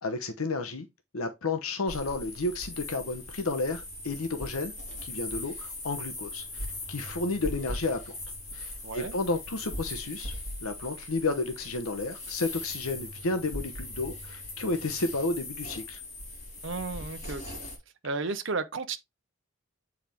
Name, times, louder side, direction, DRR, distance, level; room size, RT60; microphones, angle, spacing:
voice 1, 0.0-0.9 1.1-4.7 5.0-8.1 8.5-10.3 10.6-16.0, left 3 dB, 85° left, 0.9 m, -32 dB
sound 1, 1.9-17.8, left 1 dB, 35° left, 3.4 m, -39 dB
voice 2, 8.8-9.1 16.6-17.7 18.0-19.0, right 3 dB, 60° right, 0.8 m, -33 dB
7.6 x 4.8 x 3.5 m
head